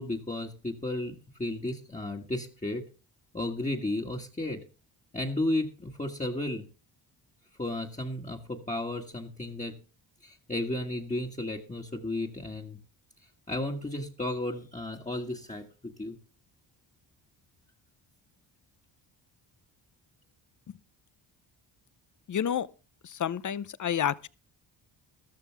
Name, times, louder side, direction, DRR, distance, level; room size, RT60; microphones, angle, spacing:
voice 1, 0.0-2.8 3.3-4.6 5.1-6.7 7.6-9.7 10.2-12.8 13.5-16.2, left 1 dB, 15° left, 1.7 m, -33 dB
voice 2, 22.3-22.7 23.0-24.3, left 9 dB, 40° left, 0.8 m, -29 dB
13.5 x 13.5 x 3.5 m
cardioid pair, 90°, 48 cm